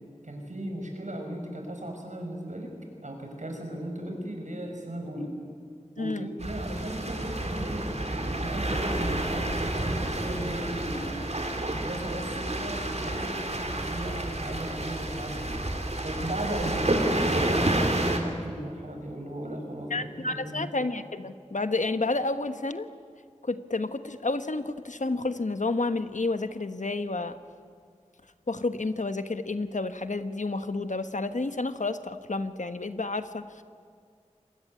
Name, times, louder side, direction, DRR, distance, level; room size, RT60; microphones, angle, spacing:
voice 1, 0.2-2.7 3.0-5.3 6.0-11.3 11.7-15.8 16.0-20.7, right 1 dB, 80° right, 2 dB, 5.9 m, -36 dB
voice 2, 6.0-6.3 19.9-22.9 23.4-27.4 28.5-33.6, left 3 dB, 80° left, 10 dB, 1.2 m, -30 dB
sound 1, 6.4-18.2, right 1 dB, 60° right, 3.2 m, -29 dB
26.5 x 20.5 x 9.7 m, 2.2 s
wide cardioid pair, 45°, 12 cm